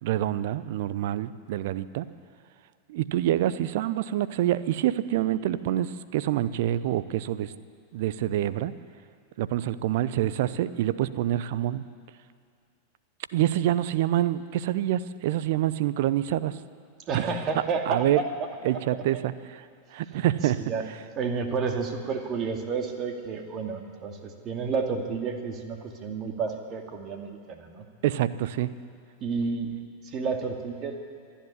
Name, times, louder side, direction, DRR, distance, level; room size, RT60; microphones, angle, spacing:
voice 1, 0.0-2.1 2.9-7.5 7.9-8.7 9.4-11.8 13.3-16.6 17.1-17.3 17.9-18.2 18.6-19.6 19.9-20.7 28.0-28.7, right 13 dB, 50° right, 15 dB, 0.7 m, -26 dB
voice 2, 17.1-18.2 18.7-18.8 20.6-20.8 21.2-27.8 29.2-29.7 30.0-31.0, right 5 dB, 30° right, 4 dB, 2.4 m, -30 dB
26.0 x 10.5 x 9.9 m, 2.2 s
figure-of-eight pair, 90°, 0 cm